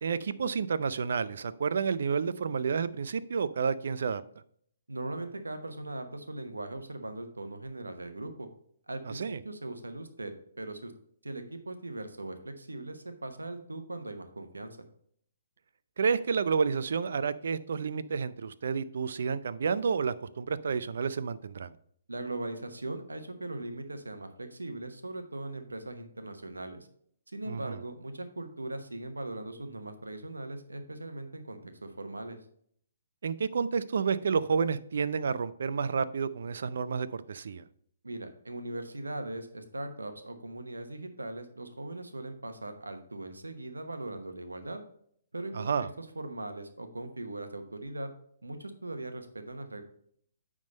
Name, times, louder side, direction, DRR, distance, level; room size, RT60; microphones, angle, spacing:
voice 1, 0.0-4.2 9.1-9.4 16.0-21.7 27.5-27.8 33.2-37.6 45.5-45.9, right 5 dB, 65° right, 15 dB, 0.5 m, -30 dB
voice 2, 4.9-8.5 8.9-10.9 11.2-14.8 22.1-26.9 27.3-32.4 38.0-44.8 45.3-48.1 48.4-49.8, right 2 dB, 90° right, 7 dB, 1.0 m, -40 dB
9.2 x 3.7 x 5.3 m, 0.65 s
figure-of-eight pair, 135°, 0 cm